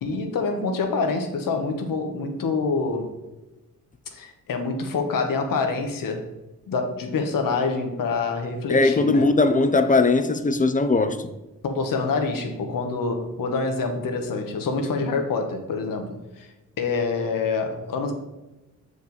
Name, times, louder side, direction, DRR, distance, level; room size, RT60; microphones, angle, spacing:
voice 1, 0.0-3.1 4.1-6.2 6.7-9.3 11.6-16.5 16.8-18.1, left 4 dB, 80° left, 1.2 m, -26 dB
voice 2, 8.7-11.2, left 3 dB, 25° left, 0.6 m, -19 dB
6.9 x 5.1 x 4.0 m
cardioid pair, 85°, 33 cm